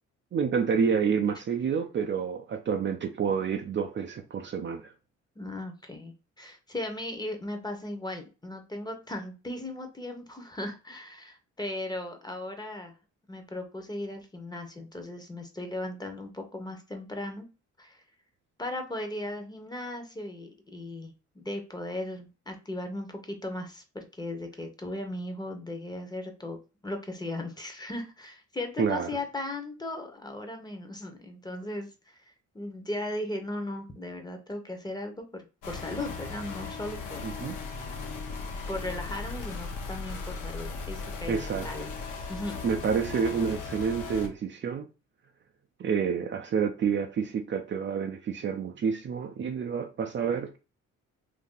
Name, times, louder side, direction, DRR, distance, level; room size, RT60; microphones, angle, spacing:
voice 1, 0.3-4.9 28.8-29.1 37.2-37.6 41.3-41.7 42.6-44.9 45.8-50.6, right 6 dB, 40° right, 0.5 m, -28 dB
voice 2, 5.4-12.9 13.3-17.5 17.8-18.0 18.6-26.6 26.8-32.2 32.5-37.2 38.7-41.9 42.3-42.6, left 1 dB, 15° left, 0.8 m, -37 dB
sound 1, 35.6-44.3, left 4 dB, 85° left, 1.1 m, -37 dB
2.8 x 2.7 x 3.7 m
cardioid pair, 90°, 30 cm